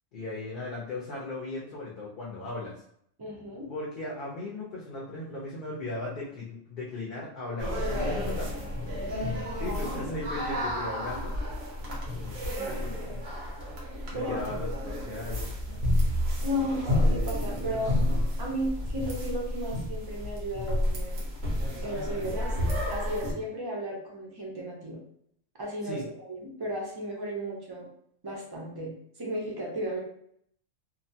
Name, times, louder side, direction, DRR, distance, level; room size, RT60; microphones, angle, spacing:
voice 1, 0.1-2.8 3.7-9.1 9.6-11.4 12.1-13.2 14.1-15.8 25.8-26.0, left 2 dB, 55° left, -5 dB, 0.7 m, -37 dB
voice 2, 3.2-3.7 10.9-11.0 12.5-12.8 13.9-14.4 16.4-17.9 18.4-21.2 21.8-22.5 22.9-25.0 25.6-27.9 28.2-28.9 29.2-30.0, equal, 30° right, -2 dB, 0.4 m, -34 dB
sound 1, 7.6-23.3, left 1 dB, 80° right, 1.2 m, -30 dB
2.8 x 2.2 x 2.6 m, 0.68 s
omnidirectional pair, 1.3 m